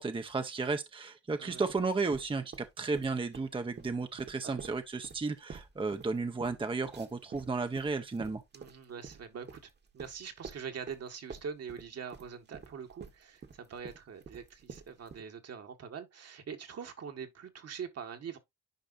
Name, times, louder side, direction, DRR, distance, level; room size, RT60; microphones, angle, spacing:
voice 1, 0.0-8.4, right 4 dB, 15° right, 0.8 m, -33 dB
sound 1, 1.7-3.5 3.8-11.0 11.3-15.2, right 5 dB, 35° right, 1.3 m, -48 dB
voice 2, 8.5-18.4, right 6 dB, 55° right, 1.6 m, -44 dB
10.0 x 4.9 x 2.6 m
cardioid pair, 90°, 30 cm